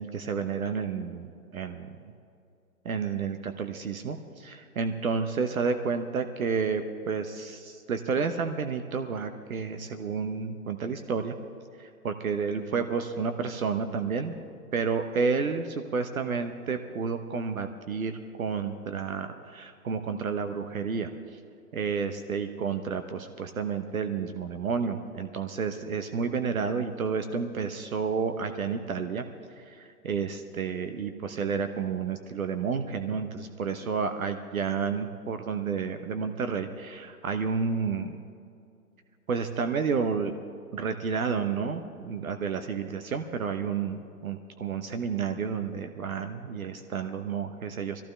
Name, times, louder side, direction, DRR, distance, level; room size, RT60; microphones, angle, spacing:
voice 1, 0.0-1.9 2.8-11.4 11.8-14.3 14.7-21.1 21.7-29.2 29.6-38.2 39.3-40.4 40.7-48.0, right 5 dB, 65° right, 8 dB, 1.0 m, -30 dB
21.5 x 15.0 x 3.3 m, 2.5 s
hypercardioid pair, 145°, 45 cm